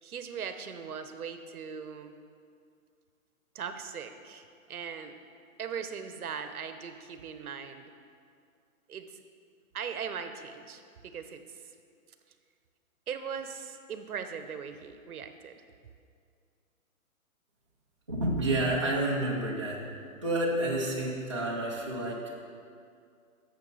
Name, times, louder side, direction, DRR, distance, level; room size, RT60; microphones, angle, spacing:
voice 1, 0.0-2.1 3.5-5.1 5.6-7.9 8.9-9.1 9.7-11.4 13.1-15.6, right 7 dB, 80° right, 8 dB, 0.9 m, -39 dB
voice 2, 18.1-19.8 20.2-22.3, right 1 dB, 20° right, -5 dB, 0.5 m, -29 dB
10.5 x 7.2 x 3.9 m, 2.3 s
hypercardioid pair, 180°, 43 cm